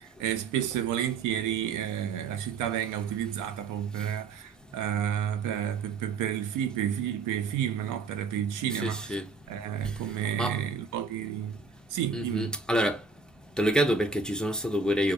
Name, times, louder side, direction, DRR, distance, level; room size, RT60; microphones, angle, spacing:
voice 1, 0.0-9.2 9.5-11.6 11.9-12.6, right 10 dB, 80° right, 0.5 m, -31 dB
voice 2, 8.7-9.3 9.8-9.9 10.3-10.6 12.1-13.0 13.6-15.1, equal, 5° left, 0.4 m, -27 dB
2.2 x 2.1 x 2.6 m
cardioid pair, 90°, 30 cm